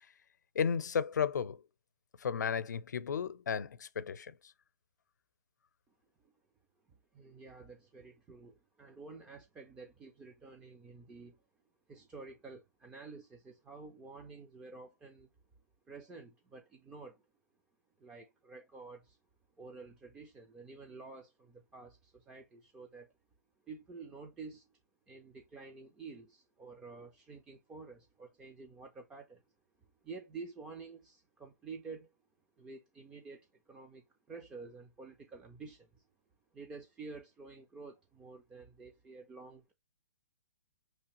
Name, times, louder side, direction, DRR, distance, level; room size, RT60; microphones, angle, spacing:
voice 1, 0.5-1.6 2.2-4.3, left 7 dB, 80° left, 0.6 m, -33 dB
voice 2, 6.9-11.4 11.9-15.3 15.9-17.2 18.0-19.2 19.6-23.1 23.6-24.7 25.1-29.4 30.0-32.1 32.6-36.0 36.5-39.7, right 4 dB, 10° right, 0.3 m, -50 dB
5.6 x 3.2 x 2.9 m
hypercardioid pair, 165°, 9 cm